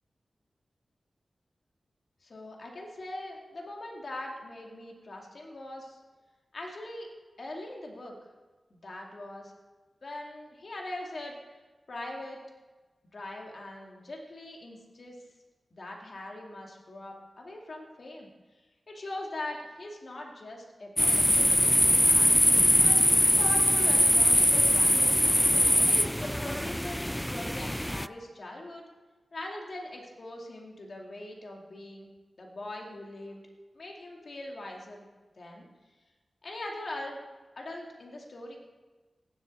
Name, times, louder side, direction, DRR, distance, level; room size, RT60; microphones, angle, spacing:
voice 1, 2.2-6.0 6.5-7.1 7.4-8.1 8.7-9.5 10.0-11.4 11.9-12.4 13.1-15.2 15.7-18.3 18.9-21.6 21.8-22.3 22.8-23.0 23.2-25.2 25.8-28.8 29.3-32.1 32.4-33.4 33.7-35.1 35.4-35.7 36.4-37.2 37.6-38.6, left 1 dB, 65° left, 0 dB, 2.3 m, -41 dB
sound 1, 21.0-28.1, equal, 5° left, 0.3 m, -22 dB
17.5 x 8.1 x 4.2 m, 1.2 s
cardioid pair, 40°, 0 cm